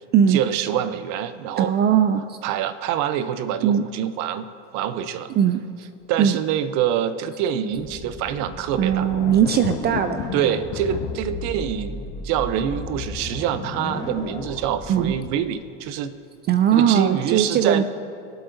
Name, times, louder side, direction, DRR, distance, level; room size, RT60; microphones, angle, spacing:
voice 1, 0.3-1.7 2.4-4.5 4.7-5.3 6.1-9.1 10.3-16.1 16.7-17.8, right 9 dB, 50° right, 12 dB, 0.8 m, -26 dB
voice 2, 1.6-2.4 3.6-3.8 5.4-5.6 6.2-6.4 8.8-10.3 14.9-15.1 16.5-17.8, right 9 dB, 30° right, 10 dB, 0.4 m, -19 dB
sound 1, 7.7-15.3, left 2 dB, 10° left, 1.3 m, -35 dB
sound 2, 8.9-11.2, left 14 dB, 50° left, 0.6 m, -33 dB
23.0 x 7.9 x 2.7 m, 2.5 s
hypercardioid pair, 105°, 35 cm